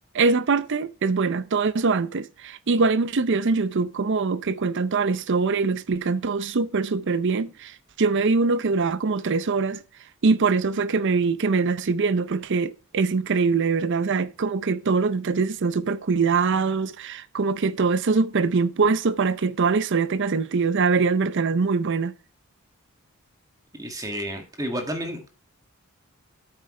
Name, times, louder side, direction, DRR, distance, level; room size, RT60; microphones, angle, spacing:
voice 1, 0.1-9.8 10.2-22.1, right 4 dB, 55° right, 0.5 m, -23 dB
voice 2, 23.8-25.4, equal, 15° right, 2.0 m, -31 dB
8.7 x 8.6 x 3.2 m
head